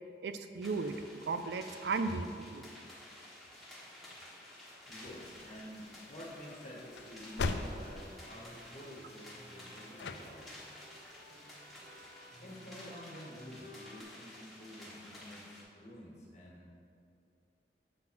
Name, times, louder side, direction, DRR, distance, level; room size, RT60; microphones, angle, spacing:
voice 1, 0.2-1.0 1.2-2.7, right 4 dB, 70° right, 9 dB, 0.4 m, -35 dB
sound 1, 0.6-15.6, left 1 dB, ahead, 1.3 m, -53 dB
sound 2, 4.9-12.2, left 3 dB, 85° left, 0.4 m, -43 dB
voice 2, 4.9-10.6 12.4-16.7, left 1 dB, 40° left, -3 dB, 1.6 m, -50 dB
sound 3, 6.4-14.0, right 1 dB, 30° right, 0.9 m, -58 dB
7.6 x 3.9 x 5.8 m, 2.5 s
head